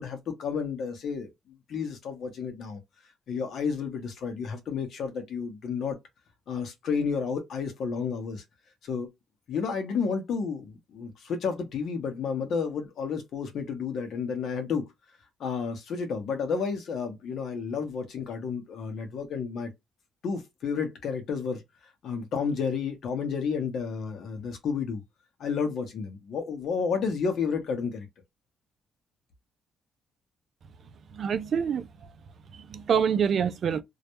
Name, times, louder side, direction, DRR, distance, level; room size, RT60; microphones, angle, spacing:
voice 1, 0.0-2.8 3.3-6.0 6.5-8.4 8.8-9.1 9.5-14.9 15.4-19.7 20.2-25.0 25.4-28.1, left 5 dB, 65° left, 0.6 m, -31 dB
voice 2, 31.1-31.9 32.5-33.8, right 7 dB, 55° right, 0.3 m, -26 dB
2.2 x 2.0 x 2.9 m
cardioid pair, 90°, 0 cm